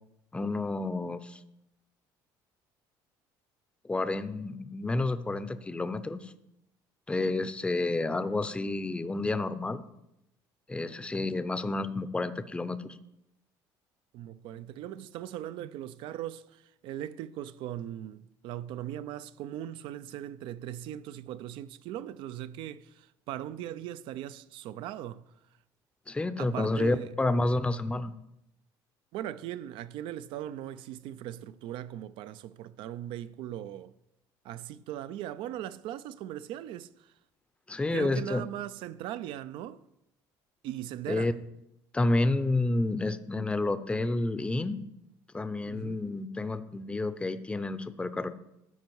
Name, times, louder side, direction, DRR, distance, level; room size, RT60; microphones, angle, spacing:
voice 1, 0.3-1.4 3.8-6.3 7.1-9.8 10.7-13.0 26.1-28.1 37.7-38.4 41.1-41.3 41.9-44.8 45.3-48.3, left 2 dB, 10° left, 0.5 m, -30 dB
voice 2, 14.1-25.2 26.4-27.1 29.1-33.9 34.4-37.1 37.9-39.8 40.6-41.4 45.7-46.2, right 12 dB, 70° right, 0.4 m, -39 dB
12.5 x 4.6 x 4.6 m
supercardioid pair, 90°, 9 cm